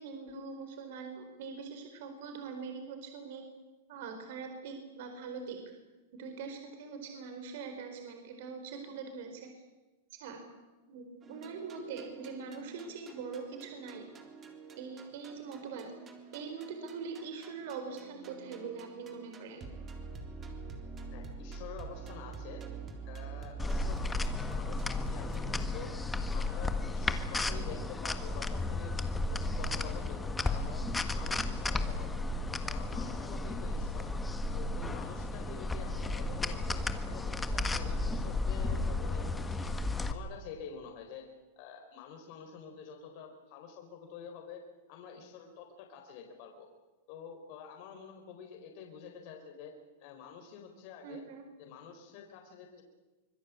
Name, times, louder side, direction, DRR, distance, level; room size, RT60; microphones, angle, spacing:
voice 1, 0.0-3.4 3.9-5.6 6.1-9.5 10.1-10.4 10.9-14.0 14.8-15.9 16.3-19.6 51.0-51.4, right 5 dB, 65° right, 6 dB, 4.5 m, -43 dB
sound 1, 11.2-25.8, right 3 dB, 20° right, 3.6 m, -46 dB
voice 2, 21.1-22.6 23.1-24.0 24.4-25.9 26.3-30.8 31.1-32.2 32.6-34.1 34.5-39.7 40.1-41.3 41.6-44.6 44.9-46.7 47.1-49.7 50.0-51.2 51.6-52.8, left 7 dB, 50° left, 3 dB, 4.4 m, -48 dB
sound 2, 23.6-40.1, left 2 dB, 10° left, 1.6 m, -33 dB
25.5 x 21.5 x 8.6 m, 1.2 s
supercardioid pair, 145°, 0 cm